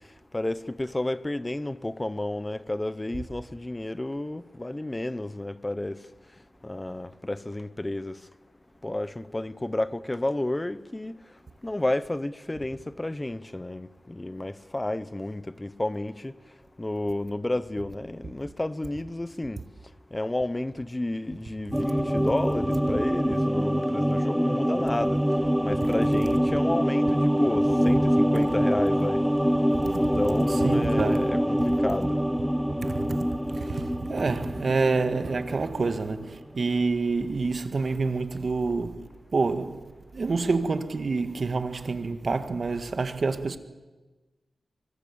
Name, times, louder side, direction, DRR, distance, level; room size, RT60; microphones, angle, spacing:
voice 1, 0.3-6.0 6.6-8.2 8.8-11.1 11.6-16.3 16.8-19.6 20.1-25.2 25.6-29.2 30.0-32.1, left 1 dB, 25° left, 1.0 m, -31 dB
sound 1, 21.7-36.3 36.5-36.6, equal, ahead, 0.8 m, -25 dB
voice 2, 30.5-31.3 32.8-33.1 33.5-39.0 39.3-39.8 40.1-43.6, right 4 dB, 60° right, 1.8 m, -27 dB
24.5 x 20.5 x 7.2 m
cardioid pair, 50°, 0 cm